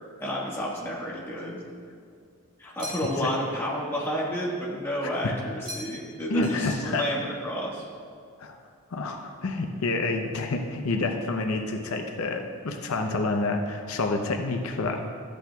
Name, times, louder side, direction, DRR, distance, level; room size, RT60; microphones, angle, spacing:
voice 1, 0.2-1.6 2.6-7.8, equal, 10° left, -5 dB, 1.4 m, -31 dB
sound 1, 2.8-3.4 5.6-6.1 6.4-7.2, equal, 20° right, 1.6 m, -41 dB
voice 2, 6.3-7.0 8.4-8.6 8.9-15.0, left 3 dB, 75° left, 3 dB, 0.6 m, -28 dB
13.0 x 8.3 x 2.3 m, 2.2 s
head